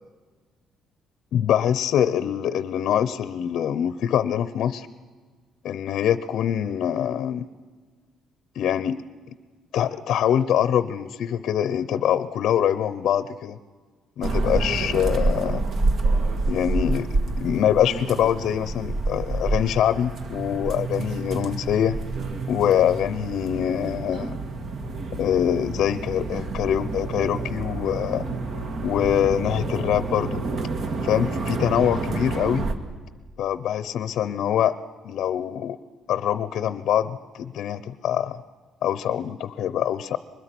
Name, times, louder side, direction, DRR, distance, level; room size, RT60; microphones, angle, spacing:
voice 1, 1.3-4.9 5.6-7.5 8.5-9.0 9.3-9.4 9.7-13.6 14.2-15.6 16.5-22.0 22.5-24.4 25.2-28.2 28.8-30.4 31.0-32.7 33.4-34.8 35.0-35.8 36.1-38.4 38.8-40.2, left 10 dB, 65° left, 14 dB, 0.7 m, -24 dB
sound 1, 14.2-32.7, right 3 dB, 50° right, 1.8 m, -28 dB
23.5 x 21.0 x 6.1 m, 1.5 s
cardioid pair, 135°, 0 cm